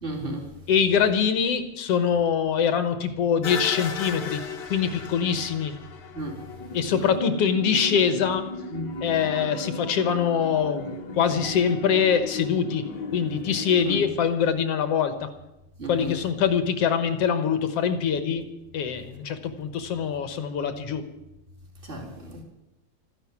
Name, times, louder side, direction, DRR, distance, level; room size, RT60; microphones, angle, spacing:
voice 1, 0.0-0.5 5.2-5.4 6.1-6.4 8.7-8.9 13.8-14.0 15.8-16.1 21.8-22.4, right 1 dB, 15° right, 0 dB, 3.5 m, -33 dB
voice 2, 0.7-4.4 4.7-5.7 6.7-8.5 9.0-12.9 13.1-15.3 15.9-18.5 18.7-21.0, left 7 dB, 60° left, 11 dB, 2.0 m, -24 dB
sound 1, 3.4-13.8, left 3 dB, 45° left, 1.6 m, -35 dB
14.0 x 11.0 x 9.5 m, 0.92 s
omnidirectional pair, 3.3 m